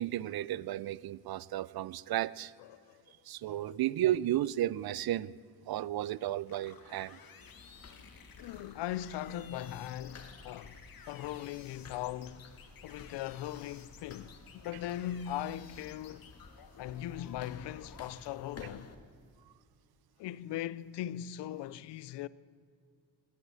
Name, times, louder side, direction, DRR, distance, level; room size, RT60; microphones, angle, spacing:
voice 1, 0.0-2.5 3.3-5.3 5.7-7.2, right 13 dB, 65° right, 0.5 m, -33 dB
voice 2, 2.7-3.0 3.5-3.8 8.4-12.5 12.8-16.3 16.8-18.9 20.2-22.3, left 12 dB, 90° left, 0.6 m, -39 dB
sound 1, 6.5-18.1, left 6 dB, 60° left, 1.8 m, -55 dB
sound 2, 7.4-19.0, left 4 dB, 40° left, 1.6 m, -54 dB
20.5 x 8.3 x 7.6 m
cardioid pair, 90°, 40 cm